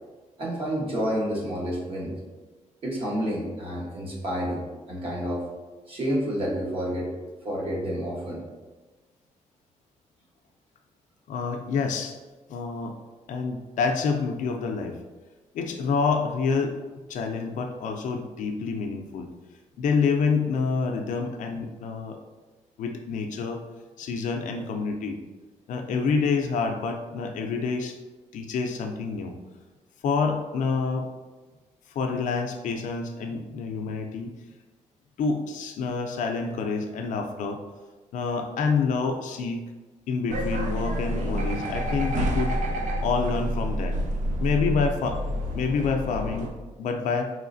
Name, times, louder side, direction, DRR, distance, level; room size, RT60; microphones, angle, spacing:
voice 1, 0.4-2.1 2.8-4.6 4.9-5.5 5.9-7.1 7.4-8.4, equal, 45° right, -4 dB, 1.1 m, -29 dB
voice 2, 11.3-12.2 12.5-13.0 13.3-15.0 15.5-16.8 17.1-19.3 19.8-22.2 22.8-23.6 24.0-25.2 25.7-28.0 28.3-29.3 30.0-31.1 31.9-34.3 35.2-37.6 38.1-39.6 40.1-42.6 43.0-44.0 44.4-45.2 45.5-46.5 46.8-47.3, left 5 dB, 80° left, 4 dB, 0.4 m, -27 dB
sound 1, 40.3-46.5, equal, 70° right, 0.5 m, -28 dB
4.8 x 3.1 x 2.5 m, 1.2 s
wide cardioid pair, 160°, 13 cm